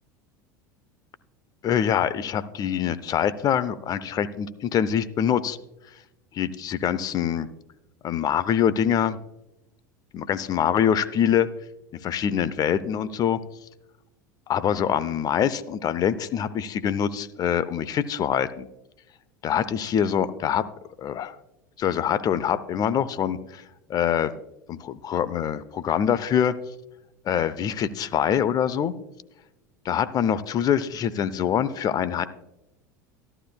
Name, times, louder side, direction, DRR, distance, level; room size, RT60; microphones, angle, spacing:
voice 1, 1.6-5.6 6.3-7.5 8.0-9.2 10.1-11.5 12.0-13.4 14.5-18.7 19.4-20.6 21.0-21.4 21.8-23.6 23.9-24.3 24.7-26.5 27.3-29.0 29.8-32.3, left 9 dB, 40° left, 15 dB, 0.7 m, -24 dB
14.0 x 12.0 x 2.3 m, 0.91 s
hypercardioid pair, 85°, 10 cm